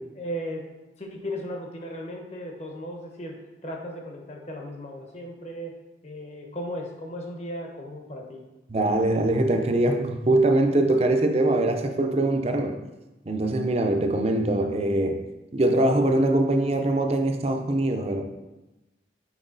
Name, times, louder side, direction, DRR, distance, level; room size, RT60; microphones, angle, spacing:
voice 1, 0.2-0.6 1.0-3.3 3.6-5.7 6.0-8.4, equal, 35° left, 2 dB, 0.9 m, -36 dB
voice 2, 8.7-12.8 13.3-15.2 15.5-18.2, right 1 dB, 35° right, 5 dB, 0.5 m, -22 dB
6.0 x 4.7 x 3.9 m, 1.0 s
head